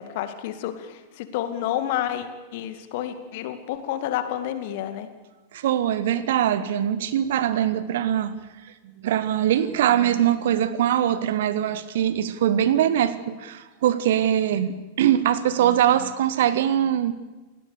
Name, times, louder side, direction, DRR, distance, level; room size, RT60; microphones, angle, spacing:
voice 1, 0.0-5.1, left 11 dB, 50° left, 9 dB, 2.2 m, -30 dB
voice 2, 5.5-8.4 9.0-17.1, right 10 dB, 55° right, 15 dB, 1.3 m, -22 dB
29.0 x 18.0 x 6.8 m, 1.2 s
figure-of-eight pair, 90°, 0 cm